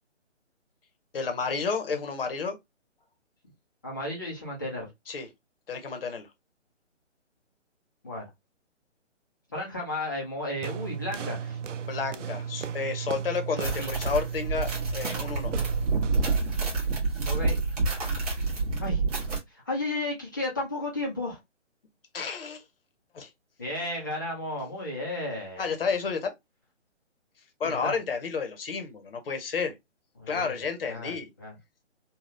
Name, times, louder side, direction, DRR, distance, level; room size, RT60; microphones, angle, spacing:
voice 1, 1.1-2.6 5.1-5.3 5.7-6.3 11.8-15.5 22.1-22.6 23.1-23.3 25.6-26.3 27.6-29.7 30.3-31.3, left 5 dB, 50° left, 0.9 m, -31 dB
voice 2, 3.8-4.9 8.0-8.3 9.5-11.6 13.8-13.9 17.2-17.6 18.8-19.0 19.5-21.4 23.6-25.7 27.6-28.0 30.2-30.6 30.8-31.5, left 1 dB, 15° left, 0.5 m, -33 dB
sound 1, 10.6-16.4, right 7 dB, 85° right, 0.5 m, -35 dB
sound 2, 13.6-19.4, right 3 dB, 30° right, 1.3 m, -28 dB
3.3 x 2.3 x 2.5 m
hypercardioid pair, 160°, 36 cm